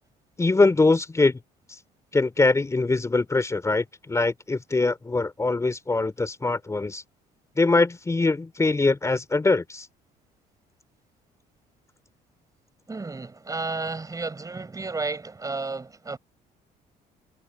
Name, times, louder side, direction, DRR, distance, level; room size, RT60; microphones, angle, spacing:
voice 1, 0.4-1.4 1.7-1.8 2.1-7.0 7.6-9.9, left 3 dB, 15° left, 2.9 m, -23 dB
voice 2, 12.9-16.2, right 3 dB, 20° right, 4.6 m, -32 dB
cardioid pair, 110°, 17 cm